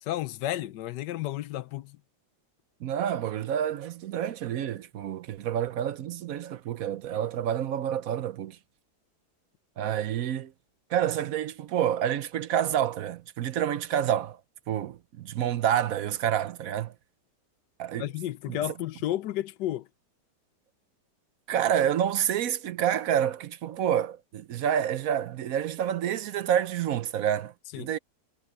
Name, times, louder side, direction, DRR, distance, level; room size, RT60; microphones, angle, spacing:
voice 1, 0.0-2.0 17.9-19.9 27.7-27.9, left 13 dB, 85° left, 1.3 m, -32 dB
voice 2, 2.8-8.6 9.8-10.5 10.9-14.4 14.7-16.9 17.8-18.1 18.5-18.6 21.5-28.0, right 10 dB, 65° right, 1.0 m, -28 dB
omnidirectional pair, 1.8 m